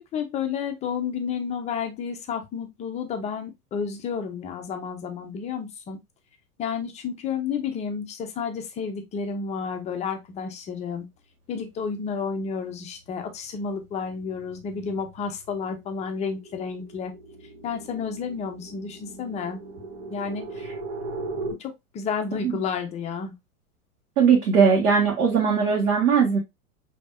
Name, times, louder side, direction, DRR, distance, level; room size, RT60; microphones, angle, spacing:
voice 1, 0.0-6.0 6.6-11.1 11.5-17.1 17.6-19.6 20.1-20.7 21.6-23.3, left 6 dB, 15° left, 0.5 m, -31 dB
sound 1, 11.9-12.2 12.6-21.5, right 3 dB, 55° right, 1.8 m, -39 dB
voice 2, 24.2-26.4, right 6 dB, 70° right, 1.4 m, -19 dB
5.2 x 2.8 x 2.4 m
hypercardioid pair, 100°, 45 cm